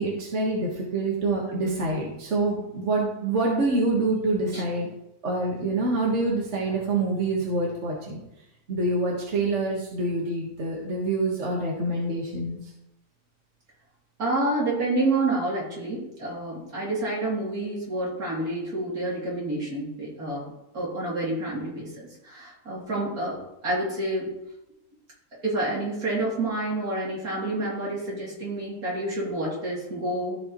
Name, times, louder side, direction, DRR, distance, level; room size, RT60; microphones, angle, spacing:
voice 1, 0.0-4.9 5.2-8.2 8.7-12.6, right 2 dB, 50° right, -3 dB, 1.7 m, -26 dB
voice 2, 14.2-21.9 22.2-24.3 25.4-30.4, right 2 dB, 70° right, -5 dB, 3.4 m, -28 dB
14.5 x 5.0 x 3.0 m, 0.88 s
omnidirectional pair, 1.6 m